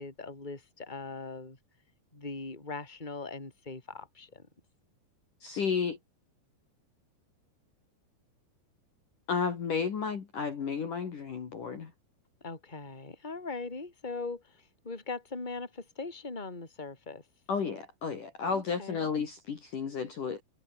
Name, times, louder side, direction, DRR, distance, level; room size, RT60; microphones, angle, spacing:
voice 1, 0.0-1.6 2.1-4.5 12.4-17.2 18.5-19.1, left 3 dB, 10° left, 4.3 m, -40 dB
voice 2, 5.4-6.0 9.3-11.9 17.5-20.4, left 6 dB, 50° left, 4.0 m, -32 dB
omnidirectional pair, 5.4 m